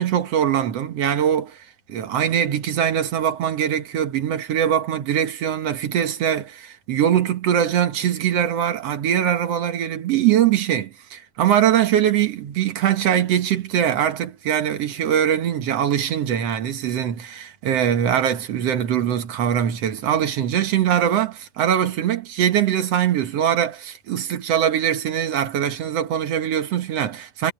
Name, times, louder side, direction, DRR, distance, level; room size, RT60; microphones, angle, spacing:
voice 1, 0.0-27.5, right 9 dB, 60° right, 2.1 m, -22 dB
omnidirectional pair, 3.6 m